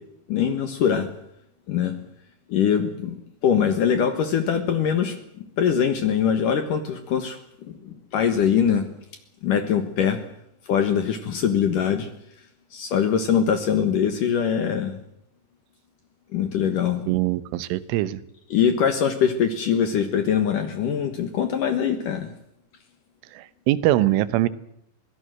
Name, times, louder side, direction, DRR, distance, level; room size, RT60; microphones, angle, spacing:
voice 1, 0.3-1.1 1.7-2.0 2.5-5.2 5.6-7.4 7.8-8.9 9.4-10.2 10.7-12.1 12.7-15.0 16.3-17.1 18.5-22.3, left 8 dB, 65° left, 9 dB, 2.2 m, -22 dB
voice 2, 17.1-18.2 23.3-24.5, right 15 dB, 85° right, 16 dB, 3.5 m, -22 dB
24.0 x 16.0 x 7.8 m, 0.75 s
omnidirectional pair, 5.6 m